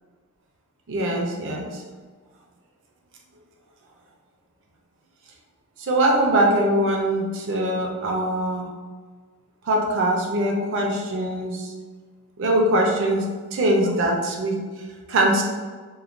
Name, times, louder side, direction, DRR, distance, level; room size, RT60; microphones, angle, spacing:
voice 1, 0.9-1.8 5.8-8.7 9.7-11.7 12.4-14.6 15.1-15.4, right 1 dB, 60° right, 0 dB, 0.5 m, -22 dB
3.1 x 2.1 x 2.5 m, 1.5 s
head